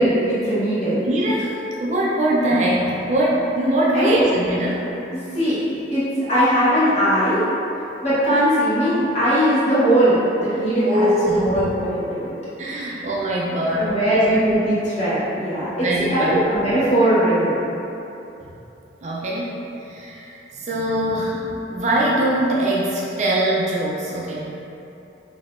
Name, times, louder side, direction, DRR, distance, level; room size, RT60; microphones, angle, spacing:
voice 1, 0.0-1.0 3.9-4.3 5.1-7.4 8.0-12.3 12.6-12.9 13.7-17.6, right 1 dB, 35° left, -12 dB, 1.2 m, -20 dB
voice 2, 1.0-4.8 10.5-11.7 12.6-14.2 15.8-16.4 19.0-24.6, right 1 dB, 40° right, -5 dB, 0.4 m, -22 dB
4.0 x 2.7 x 2.5 m, 2.9 s
head